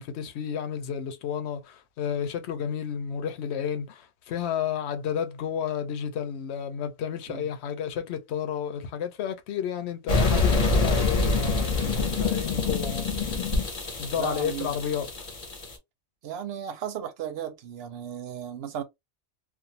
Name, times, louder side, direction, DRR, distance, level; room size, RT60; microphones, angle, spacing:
voice 1, 0.0-13.4 14.0-15.1, left 8 dB, 70° left, 0.9 m, -32 dB
sound 1, 10.1-15.7, left 3 dB, 40° left, 0.7 m, -26 dB
voice 2, 14.2-14.7 16.2-18.8, right 8 dB, 65° right, 0.8 m, -35 dB
2.4 x 2.2 x 2.7 m
omnidirectional pair, 1.2 m